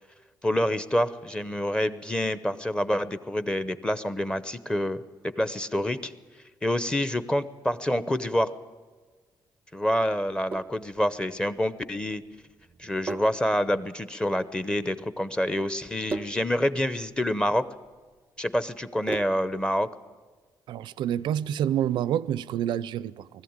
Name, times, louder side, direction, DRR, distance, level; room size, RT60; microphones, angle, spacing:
voice 1, 0.4-5.0 5.4-6.1 6.6-8.5 9.7-12.2 12.8-17.7 18.4-19.9, left 1 dB, 10° left, 0.9 m, -27 dB
Sink (filling or washing), 10.3-19.7, right 3 dB, 25° right, 0.5 m, -41 dB
voice 2, 20.7-23.3, right 10 dB, 85° right, 0.6 m, -28 dB
20.0 x 14.5 x 8.9 m
cardioid pair, 120°, 8 cm